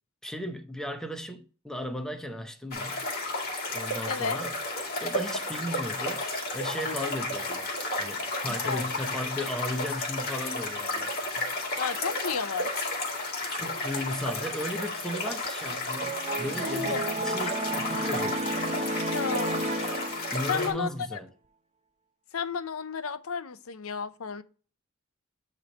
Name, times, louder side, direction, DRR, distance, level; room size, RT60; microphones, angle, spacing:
voice 1, 0.2-3.0 3.7-4.5 5.0-7.7 8.0-11.5 13.5-18.8 20.3-21.3, left 1 dB, 5° left, 0.8 m, -36 dB
sound 1, 2.7-20.7, left 2 dB, 50° left, 2.2 m, -32 dB
voice 2, 4.1-4.4 6.9-7.1 8.5-8.9 11.8-12.9 16.7-17.2 19.1-19.7 20.5-21.2 22.3-24.4, left 6 dB, 80° left, 0.6 m, -33 dB
sound 2, 16.0-20.6, right 2 dB, 30° right, 0.7 m, -32 dB
9.5 x 3.2 x 5.1 m
head